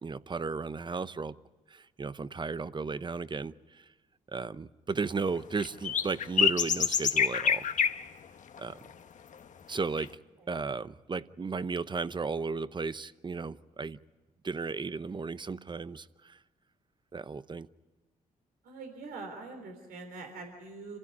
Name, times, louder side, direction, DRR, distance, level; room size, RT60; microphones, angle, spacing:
voice 1, 0.0-1.3 1.7-3.8 4.3-7.7 8.6-8.8 9.7-10.2 10.5-14.0 14.4-16.4 17.1-17.7, right 4 dB, 30° right, 15 dB, 0.9 m, -35 dB
sound 1, 5.6-8.0 8.6-8.7 10.0-10.1, left 7 dB, 55° left, 1.1 m, -26 dB
voice 2, 18.6-21.0, right 3 dB, 85° right, 4 dB, 3.6 m, -44 dB
27.0 x 16.0 x 9.6 m, 1.2 s
supercardioid pair, 65°, 15 cm